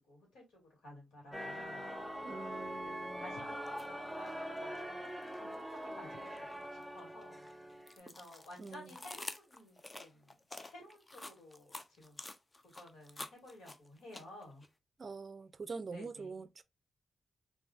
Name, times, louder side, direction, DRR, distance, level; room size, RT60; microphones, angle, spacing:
voice 1, 0.1-0.4 0.8-1.8 2.7-6.4 6.7-7.4 8.0-10.3 10.7-12.2 12.7-14.6 15.9-16.4, left 1 dB, 85° left, 2.4 m, -54 dB
sound 1, 1.3-8.0, equal, ahead, 1.3 m, -43 dB
voice 2, 2.2-3.3 8.6-9.0 15.0-16.6, right 4 dB, 45° right, 0.4 m, -45 dB
sound 2, 3.7-3.9 4.3-5.8 6.2-14.7, left 2 dB, 25° left, 0.5 m, -49 dB
3.7 x 3.5 x 2.4 m
cardioid pair, 90°, 0 cm